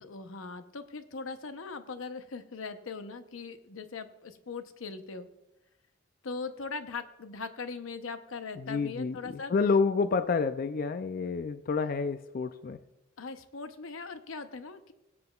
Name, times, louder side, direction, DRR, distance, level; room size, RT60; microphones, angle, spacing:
voice 1, 0.0-5.3 6.2-9.5 13.2-14.9, left 4 dB, 90° left, 9 dB, 0.8 m, -40 dB
voice 2, 8.6-12.8, left 4 dB, 45° left, 11 dB, 0.4 m, -29 dB
21.5 x 7.8 x 2.3 m, 0.98 s
head